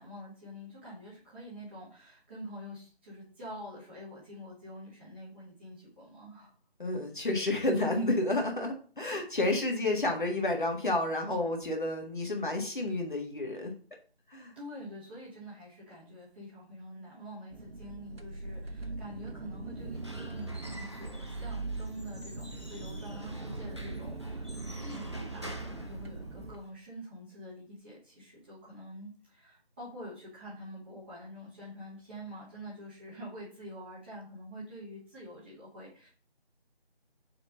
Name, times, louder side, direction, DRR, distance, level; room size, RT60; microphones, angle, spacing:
voice 1, 0.0-6.5 14.6-36.1, equal, 10° right, -10 dB, 1.8 m, -46 dB
voice 2, 6.8-13.7 14.3-14.5, left 2 dB, 50° left, 1 dB, 1.7 m, -30 dB
sound 1, 17.5-26.6, right 3 dB, 70° right, 0.9 m, -40 dB
Squeak / Wood, 19.8-26.7, equal, 25° right, 0.6 m, -49 dB
4.7 x 4.5 x 5.3 m, 0.40 s
figure-of-eight pair, 160°, 32 cm